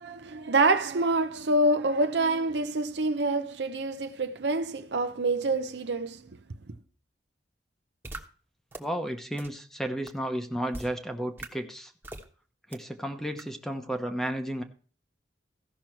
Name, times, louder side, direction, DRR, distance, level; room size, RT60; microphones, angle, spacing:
voice 1, 0.0-6.3, right 2 dB, 75° right, 0.7 m, -26 dB
sound 1, 8.0-8.2 8.7-8.8 9.4-9.5 10.1-10.2 10.7-10.9 11.4-11.5 12.0-12.2 12.7-12.8 13.4-13.5, right 2 dB, 15° right, 1.2 m, -39 dB
voice 2, 8.8-11.9 12.7-14.6, right 1 dB, ahead, 0.9 m, -33 dB
15.0 x 6.1 x 4.5 m
head